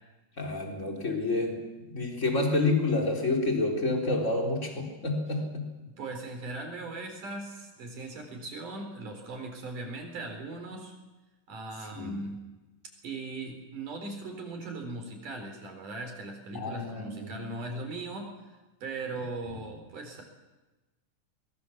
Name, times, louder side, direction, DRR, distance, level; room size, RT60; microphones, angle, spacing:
voice 1, 0.4-1.6 1.9-5.7 12.0-12.1 16.5-17.4, left 2 dB, 20° left, 1 dB, 4.1 m, -28 dB
voice 2, 6.0-10.9 11.5-12.4 13.0-20.2, right 2 dB, 70° right, 4 dB, 5.5 m, -39 dB
23.5 x 22.0 x 7.3 m, 1.1 s
omnidirectional pair, 3.8 m